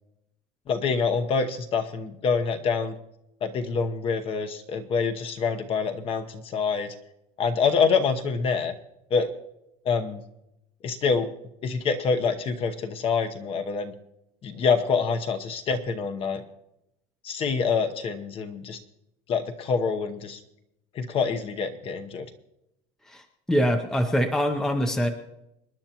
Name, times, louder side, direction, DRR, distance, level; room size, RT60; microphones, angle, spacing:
voice 1, 0.7-2.9 3.4-6.9 7.4-8.7 9.1-9.3 9.8-10.2 10.8-11.3 11.6-13.9 14.4-16.4 17.2-18.8 19.3-20.4 20.9-22.3, left 5 dB, 30° left, 8 dB, 0.9 m, -26 dB
voice 2, 23.1-25.1, equal, 5° left, 6 dB, 0.6 m, -24 dB
26.5 x 10.5 x 2.9 m, 0.86 s
cardioid pair, 165°, 19 cm